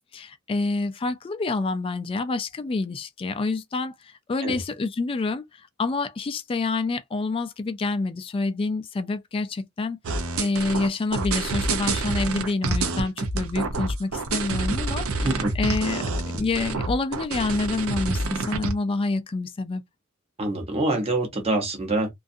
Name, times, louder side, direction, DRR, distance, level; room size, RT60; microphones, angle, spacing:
voice 1, 0.1-15.3 15.6-19.8, left 3 dB, 25° left, 0.3 m, -27 dB
sound 1, 10.0-18.7, right 3 dB, 80° right, 0.6 m, -27 dB
voice 2, 20.4-22.1, right 2 dB, 30° right, 0.8 m, -25 dB
2.6 x 2.3 x 2.5 m
head